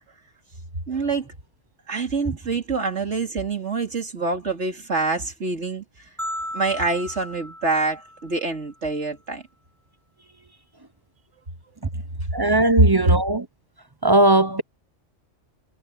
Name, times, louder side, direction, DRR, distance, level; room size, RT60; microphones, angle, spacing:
voice 1, 0.9-1.3 1.9-6.1 6.5-9.4, right 3 dB, 70° right, 3.2 m, -26 dB
sound 1, 6.2-8.5, equal, ahead, 6.0 m, -35 dB
voice 2, 12.3-13.5 14.0-14.6, right 2 dB, 25° right, 0.7 m, -18 dB
omnidirectional pair, 1.2 m